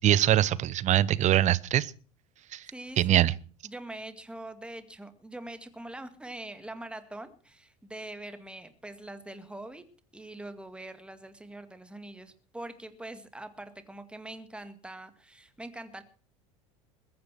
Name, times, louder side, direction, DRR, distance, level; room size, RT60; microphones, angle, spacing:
voice 1, 0.0-1.9 2.5-2.6 3.0-3.3, right 12 dB, 45° right, 1.0 m, -23 dB
voice 2, 2.7-3.2 3.6-9.8 10.1-16.0, right 1 dB, 5° right, 2.1 m, -43 dB
21.5 x 9.5 x 6.0 m
hypercardioid pair, 75°, 18 cm